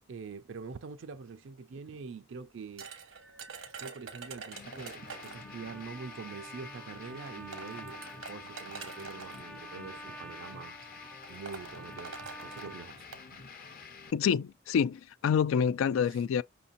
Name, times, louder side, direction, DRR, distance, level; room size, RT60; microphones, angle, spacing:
voice 1, 0.1-2.9 3.6-10.8 11.3-13.4 16.0-16.3, right 5 dB, 70° right, 0.4 m, -45 dB
sound 1, 2.8-5.5 6.6-6.7 7.3-9.4 10.3-10.5 10.8-10.9 11.2-13.3, right 5 dB, 85° right, 1.1 m, -46 dB
sound 2, 4.5-14.1, left 5 dB, 45° left, 0.7 m, -48 dB
Trumpet, 4.9-12.9, right 2 dB, 5° left, 0.4 m, -49 dB
voice 2, 14.1-16.4, left 7 dB, 80° left, 0.3 m, -27 dB
5.7 x 2.7 x 2.5 m
head